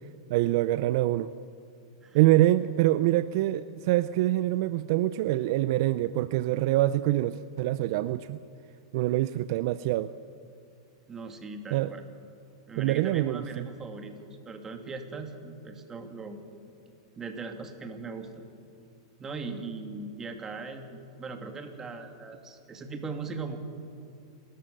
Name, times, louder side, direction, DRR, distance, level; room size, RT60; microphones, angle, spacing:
voice 1, 0.3-1.3 2.1-8.4 8.9-10.1 11.7-11.9 12.8-13.7, right 15 dB, 60° right, 14 dB, 0.5 m, -25 dB
voice 2, 11.1-12.0 12.7-16.4 17.2-18.4 19.2-23.6, right 4 dB, 20° right, 5 dB, 2.5 m, -39 dB
29.0 x 13.5 x 6.7 m, 2.4 s
hypercardioid pair, 120°, 2 cm